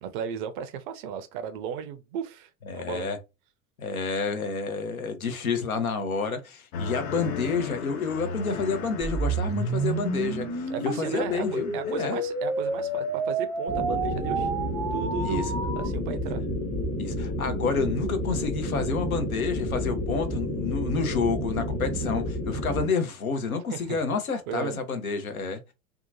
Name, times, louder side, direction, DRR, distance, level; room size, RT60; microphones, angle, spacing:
voice 1, 0.0-3.1 10.7-14.5 14.9-16.4 23.7-24.0 24.5-24.8, right 8 dB, 40° right, 0.4 m, -35 dB
voice 2, 2.7-3.2 3.8-12.2 15.2-15.4 16.9-25.7, left 4 dB, 80° left, 0.8 m, -29 dB
sound 1, 6.7-13.8 14.2-14.7, left 5 dB, 40° left, 0.6 m, -38 dB
sound 2, 9.0-15.9, right 3 dB, ahead, 0.7 m, -30 dB
sound 3, 13.7-22.9, left 1 dB, 25° left, 1.0 m, -30 dB
2.8 x 2.3 x 2.6 m
figure-of-eight pair, 85°, 42 cm